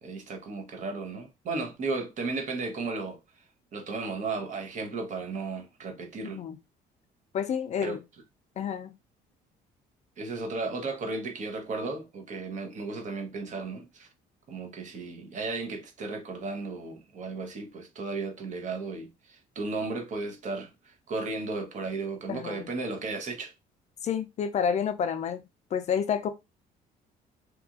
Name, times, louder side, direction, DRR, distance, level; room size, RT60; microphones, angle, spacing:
voice 1, 0.0-3.2 3.7-6.4 7.8-8.0 10.2-14.1 14.5-23.5, right 3 dB, 45° right, 0.8 m, -34 dB
voice 2, 7.3-8.0 8.6-8.9 22.3-22.6 24.0-25.4 25.7-26.3, left 7 dB, 45° left, 0.4 m, -29 dB
2.9 x 2.4 x 2.4 m
cardioid pair, 110°, 17 cm